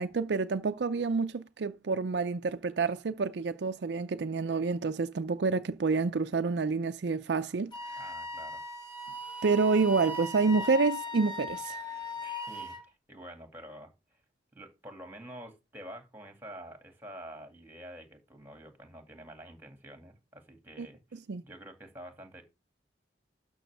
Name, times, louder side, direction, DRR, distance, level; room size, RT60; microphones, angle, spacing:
voice 1, 0.0-7.7 9.4-11.8 20.8-20.9 21.3-21.4, right 4 dB, 65° right, 0.5 m, -28 dB
Wind instrument woodwind instrument, 7.7-12.8, left 2 dB, 25° left, 1.9 m, -38 dB
voice 2, 8.0-8.6 12.2-14.2 14.5-22.4, right 1 dB, 10° right, 2.2 m, -48 dB
12.5 x 6.2 x 3.4 m
head